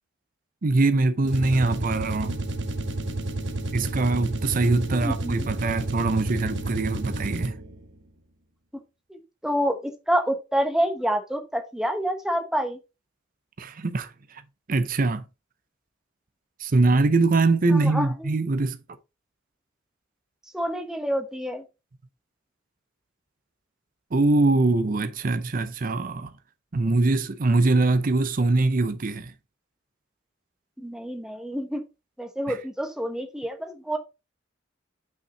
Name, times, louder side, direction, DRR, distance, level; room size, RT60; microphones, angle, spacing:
voice 1, 0.6-2.4 3.7-7.6 13.6-14.1 14.7-15.2 16.6-18.8 24.1-26.3 26.7-29.3 32.5-32.6, right 3 dB, 45° right, 0.6 m, -23 dB
sound 1, 1.2-7.8, right 2 dB, 70° right, 1.3 m, -30 dB
voice 2, 4.9-5.4 9.1-12.8 17.8-18.1 20.5-21.6 30.8-31.8 32.2-34.0, equal, 5° right, 1.2 m, -27 dB
5.9 x 5.6 x 3.9 m
head